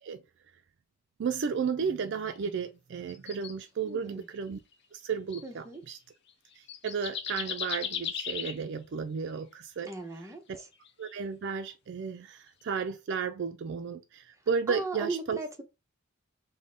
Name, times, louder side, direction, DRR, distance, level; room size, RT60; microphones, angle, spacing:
voice 1, 1.2-4.6 4.9-6.0 6.6-9.9 10.5-10.6 11.0-15.4, right 6 dB, 60° right, 0.4 m, -33 dB
sound 1, 2.3-2.5 3.1-3.5 4.5-4.7 5.3-5.5 6.3-6.4 6.7-8.6 10.8-11.1 12.6-12.8, left 8 dB, 55° left, 0.6 m, -36 dB
voice 2, 3.8-4.3 5.4-5.8 9.9-10.7 14.7-15.6, right 2 dB, 15° right, 0.7 m, -37 dB
3.6 x 2.1 x 3.8 m
head